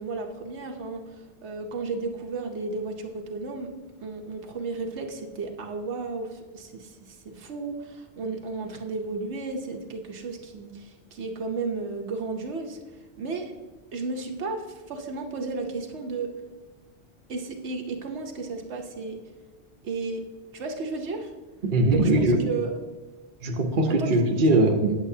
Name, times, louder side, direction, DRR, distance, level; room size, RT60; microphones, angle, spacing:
voice 1, 0.0-3.7 4.0-13.5 13.9-16.3 17.3-19.2 19.8-20.2 20.5-21.3 21.9-22.1 22.5-22.7 23.9-24.2, right 3 dB, 75° right, 3 dB, 1.1 m, -33 dB
voice 2, 21.6-22.4 23.4-24.9, right 2 dB, 50° right, 2 dB, 0.9 m, -21 dB
9.0 x 8.1 x 2.7 m, 1.3 s
omnidirectional pair, 1.2 m